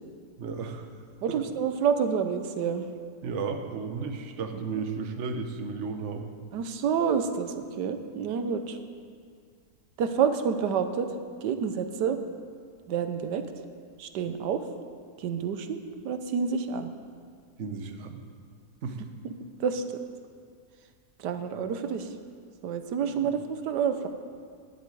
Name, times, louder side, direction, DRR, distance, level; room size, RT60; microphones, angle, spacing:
voice 1, 0.4-0.9 1.3-1.4 3.2-6.3 17.6-18.2 18.8-19.0 23.2-23.3, right 5 dB, 50° right, 5 dB, 1.2 m, -34 dB
voice 2, 1.2-2.8 6.5-8.8 10.0-12.2 12.9-13.4 14.0-14.6 15.2-16.9 19.2-19.3 19.6-19.8 21.2-22.1 22.6-24.1, right 7 dB, 90° right, 8 dB, 1.4 m, -28 dB
10.5 x 8.3 x 9.1 m, 2.1 s
omnidirectional pair, 1.8 m